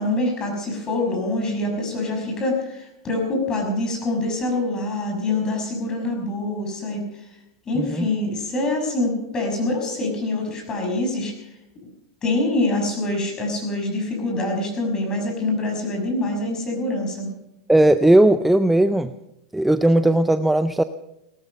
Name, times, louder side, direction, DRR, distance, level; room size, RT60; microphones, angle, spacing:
voice 1, 0.0-7.0 7.7-11.5 12.2-17.3, left 2 dB, 25° left, 2 dB, 6.0 m, -25 dB
voice 2, 7.8-8.1 17.7-19.1 19.5-20.8, right 1 dB, 5° right, 11 dB, 0.5 m, -17 dB
18.0 x 13.5 x 5.3 m, 0.86 s
hypercardioid pair, 120°, 3 cm